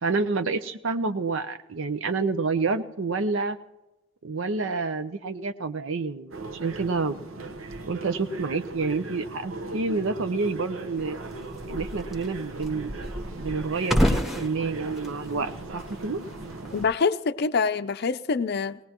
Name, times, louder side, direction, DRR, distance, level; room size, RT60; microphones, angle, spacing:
voice 1, 0.0-3.6 4.2-7.2 7.9-11.2 11.7-13.0 13.4-16.2, right 4 dB, 75° right, 10 dB, 0.7 m, -28 dB
sound 1, 6.3-16.9, right 3 dB, 90° right, 1.0 m, -38 dB
sound 2, 11.0-16.9, equal, ahead, 1.1 m, -31 dB
voice 2, 16.7-18.8, left 5 dB, 50° left, 10 dB, 0.5 m, -25 dB
20.0 x 18.0 x 3.0 m, 1.0 s
head